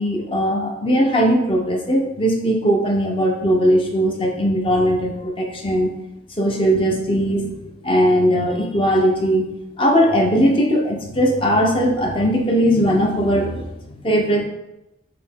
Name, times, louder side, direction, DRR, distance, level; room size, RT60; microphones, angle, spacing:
voice 1, 0.0-5.9 6.4-9.4 9.8-13.7 14.0-14.4, equal, 30° left, 1 dB, 0.6 m, -19 dB
5.0 x 2.9 x 3.5 m, 0.93 s
head